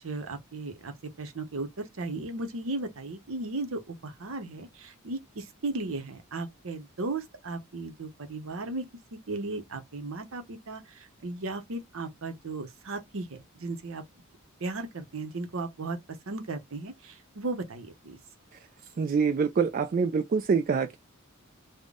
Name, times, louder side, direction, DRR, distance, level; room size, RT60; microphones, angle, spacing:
voice 1, 0.0-14.0 14.6-16.0 16.3-18.2, right 2 dB, 65° right, 0.8 m, -36 dB
voice 2, 19.0-21.0, right 5 dB, 40° right, 0.3 m, -25 dB
3.5 x 2.1 x 3.6 m
head